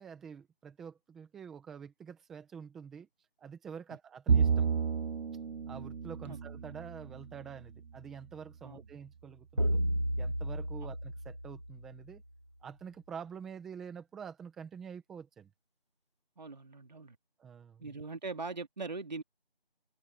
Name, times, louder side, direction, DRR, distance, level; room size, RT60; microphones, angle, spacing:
voice 1, 0.0-3.1 3.4-4.7 5.7-9.8 10.2-12.2 12.6-15.5 17.4-17.9, right 7 dB, ahead, 1.2 m, -47 dB
Bowed string instrument, 4.3-7.8, right 6 dB, 80° right, 0.6 m, -31 dB
sound 1, 9.6-12.0, equal, 30° right, 0.6 m, -32 dB
voice 2, 16.4-17.2 17.8-19.2, right 3 dB, 45° right, 3.0 m, -41 dB
figure-of-eight pair, 165°, 30 cm